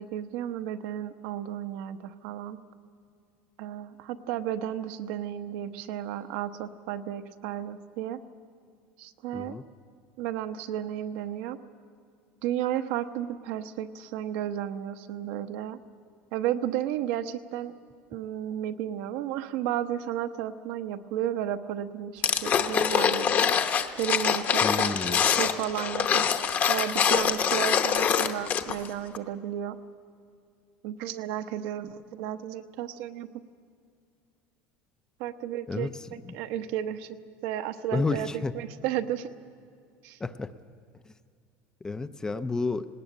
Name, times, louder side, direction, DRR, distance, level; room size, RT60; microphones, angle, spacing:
voice 1, 0.0-2.6 3.6-8.2 9.0-9.6 10.2-11.6 12.4-15.8 16.3-17.7 18.1-23.6 23.9-26.3 26.7-29.8 30.8-33.3 35.2-39.3 40.0-40.2, right 11 dB, 65° right, 9 dB, 0.9 m, -33 dB
voice 2, 9.3-9.6 24.6-25.2 35.7-35.9 36.3-36.4 37.9-38.5 40.2-40.5 41.8-42.9, left 3 dB, 10° left, 11 dB, 0.4 m, -30 dB
sound 1, 22.2-28.9 29.1-29.2, left 7 dB, 30° left, 0.9 m, -24 dB
19.0 x 18.5 x 9.0 m, 2.3 s
cardioid pair, 160°, 6 cm